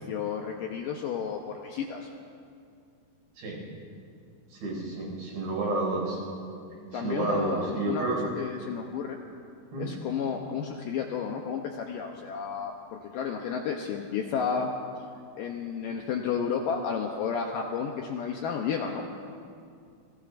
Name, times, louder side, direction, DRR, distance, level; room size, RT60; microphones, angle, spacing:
voice 1, 0.0-2.1 6.9-8.0 8.4-9.2 9.8-14.7 15.4-19.0, left 6 dB, 80° left, 2 dB, 2.0 m, -32 dB
voice 2, 4.5-6.2 6.9-8.2 9.7-9.9, right 2 dB, 80° right, -3 dB, 7.8 m, -30 dB
29.0 x 19.0 x 2.6 m, 2.4 s
omnidirectional pair, 4.8 m